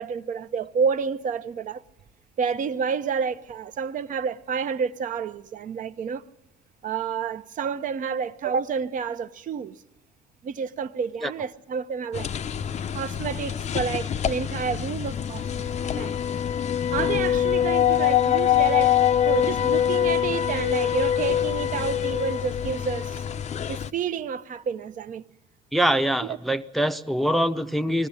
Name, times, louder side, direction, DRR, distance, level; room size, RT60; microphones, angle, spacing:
voice 1, 0.0-1.8 2.4-6.2 6.8-9.8 10.4-12.3 12.9-16.1 16.9-19.0 19.2-23.2 23.7-25.2 26.2-26.4, right 6 dB, 50° right, 0.8 m, -29 dB
sound 1, 12.1-23.9, left 10 dB, 45° left, 0.6 m, -24 dB
voice 2, 25.7-28.1, equal, ahead, 0.7 m, -24 dB
20.5 x 15.0 x 9.8 m
cardioid pair, 110°, 17 cm